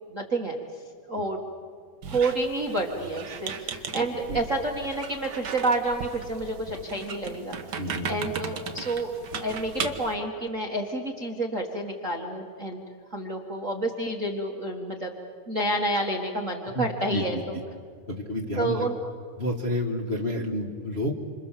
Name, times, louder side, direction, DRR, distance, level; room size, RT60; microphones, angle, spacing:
voice 1, 0.1-0.5 1.1-1.4 2.1-9.1 9.4-12.8 13.1-15.1 15.5-17.6 18.6-19.0, right 2 dB, 35° right, 2 dB, 1.3 m, -29 dB
Squeak, 2.0-10.1, right 6 dB, 65° right, 1.0 m, -37 dB
voice 2, 7.8-8.3 16.7-17.4 18.1-18.9 19.4-21.1, left 1 dB, 30° left, -2 dB, 1.1 m, -30 dB
27.5 x 27.0 x 7.4 m, 2.1 s
omnidirectional pair, 3.8 m